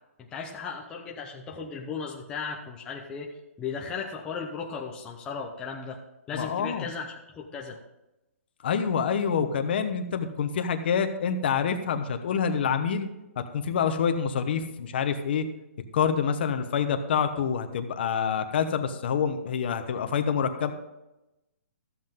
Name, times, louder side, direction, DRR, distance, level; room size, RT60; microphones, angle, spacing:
voice 1, 0.3-3.3 3.6-6.0 6.3-7.8, left 5 dB, 10° left, -1 dB, 0.7 m, -36 dB
voice 2, 6.3-6.9 8.6-13.1 13.5-15.4 15.9-20.7, left 7 dB, 40° left, 8 dB, 1.0 m, -27 dB
14.0 x 7.7 x 3.7 m, 0.95 s
hypercardioid pair, 170°, 8 cm